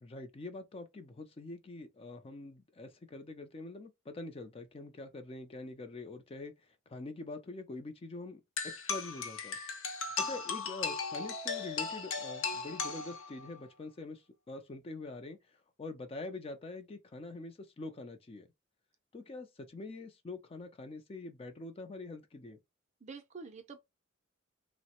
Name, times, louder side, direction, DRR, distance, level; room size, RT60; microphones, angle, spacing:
voice 1, 0.0-6.5 6.9-9.6 10.2-18.5 19.1-22.6, left 2 dB, 30° left, 0.4 m, -45 dB
sound 1, 8.6-13.6, left 5 dB, 65° left, 0.6 m, -37 dB
voice 2, 10.2-10.6 23.0-23.8, right 4 dB, 35° right, 0.5 m, -48 dB
3.1 x 2.0 x 2.8 m
head